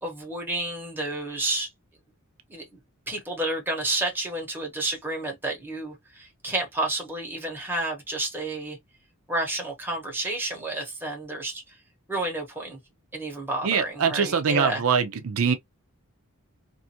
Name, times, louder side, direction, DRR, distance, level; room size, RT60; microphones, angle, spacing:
voice 1, 0.0-1.7 2.5-2.7 3.1-8.8 9.3-11.6 12.1-12.8 13.1-14.8, right 2 dB, 10° right, 1.0 m, -30 dB
voice 2, 13.6-15.5, right 6 dB, 70° right, 0.5 m, -23 dB
2.6 x 2.5 x 2.7 m
head